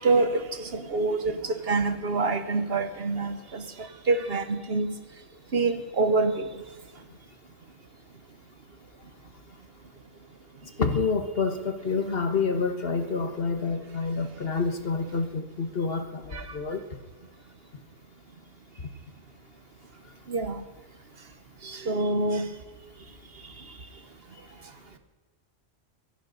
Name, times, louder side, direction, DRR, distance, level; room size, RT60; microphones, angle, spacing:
voice 1, 0.0-4.9 5.5-6.5 16.3-16.6 20.3-20.6 21.6-22.5, right 3 dB, 55° right, 1.2 m, -26 dB
voice 2, 10.8-16.8, left 4 dB, 50° left, 1.5 m, -28 dB
24.5 x 11.0 x 4.0 m
omnidirectional pair, 1.3 m